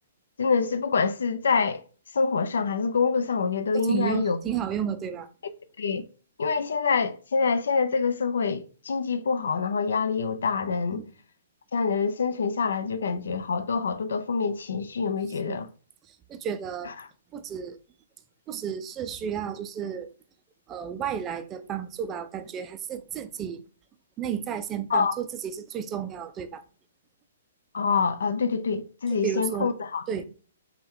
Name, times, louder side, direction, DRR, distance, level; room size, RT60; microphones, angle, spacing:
voice 1, 0.4-1.8 2.1-4.4 5.8-6.0 6.4-11.0 11.7-15.7 24.9-25.1 27.7-30.0, left 5 dB, 90° left, 0.5 m, -26 dB
voice 2, 3.7-5.3 10.9-11.1 15.3-15.6 16.3-16.9 17.3-17.8 18.5-20.1 20.7-23.6 24.2-26.6 29.1-29.7 30.1-30.2, right 8 dB, 15° right, 0.3 m, -32 dB
5.5 x 2.2 x 3.6 m
hypercardioid pair, 175°, 0 cm